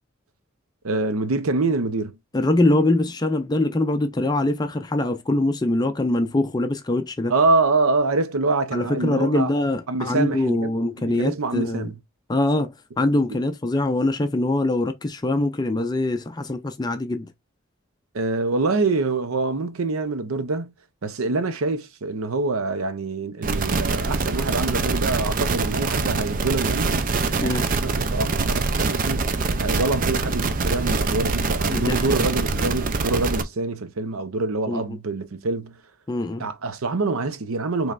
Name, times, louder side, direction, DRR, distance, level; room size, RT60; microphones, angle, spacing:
voice 1, 0.8-2.2 7.3-9.5 9.9-10.7 11.2-11.9 18.1-20.7 21.0-27.1 27.4-29.3 29.6-35.8 36.4-37.9, right 3 dB, 90° right, 0.7 m, -25 dB
voice 2, 2.3-7.3 8.7-11.9 12.3-17.3 27.4-27.7 31.7-32.3 32.5-32.7 34.7-35.0 36.1-36.5, left 2 dB, 20° left, 0.4 m, -23 dB
sound 1, 23.4-33.4, right 3 dB, 40° right, 0.4 m, -24 dB
5.2 x 3.1 x 2.4 m
head